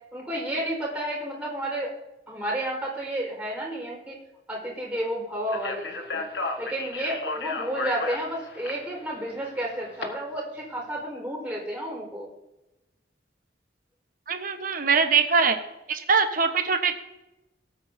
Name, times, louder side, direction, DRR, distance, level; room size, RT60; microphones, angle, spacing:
voice 1, 0.1-1.9 2.3-4.2 4.5-6.2 6.6-12.3, right 1 dB, 10° right, -4 dB, 4.5 m, -31 dB
Speech, 5.5-10.0, left 3 dB, 65° left, 1.5 m, -34 dB
voice 2, 14.3-15.6 15.9-16.9, right 5 dB, 50° right, 7 dB, 1.1 m, -22 dB
19.5 x 8.5 x 2.7 m, 0.96 s
head